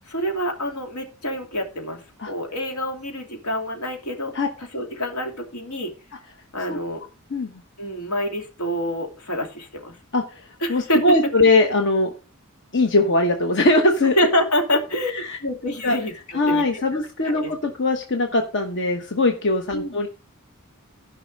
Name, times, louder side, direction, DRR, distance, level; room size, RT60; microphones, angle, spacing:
voice 1, 0.1-4.3 4.7-5.9 6.5-7.0 7.8-9.9 10.6-11.0 14.2-16.8 17.2-17.5 19.7-20.0, equal, 80° left, 3 dB, 2.8 m, -26 dB
voice 2, 10.1-12.1 12.7-14.1 15.1-15.4 15.8-16.0 16.3-20.1, left 2 dB, 55° left, 4 dB, 1.1 m, -21 dB
14.5 x 5.5 x 5.3 m, 0.34 s
head